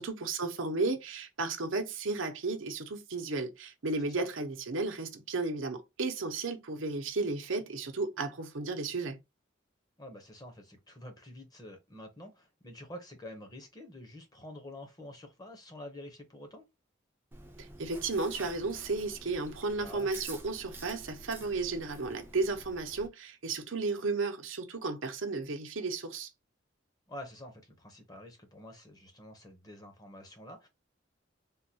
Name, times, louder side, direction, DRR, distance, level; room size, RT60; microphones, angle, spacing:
voice 1, 0.0-9.2 17.8-26.3, right 3 dB, 90° right, 0.7 m, -34 dB
voice 2, 10.0-16.6 19.8-20.1 27.1-30.7, left 1 dB, 20° left, 0.8 m, -48 dB
Chewing mastication, 17.3-23.1, right 2 dB, 10° right, 0.5 m, -49 dB
3.6 x 2.3 x 2.7 m
head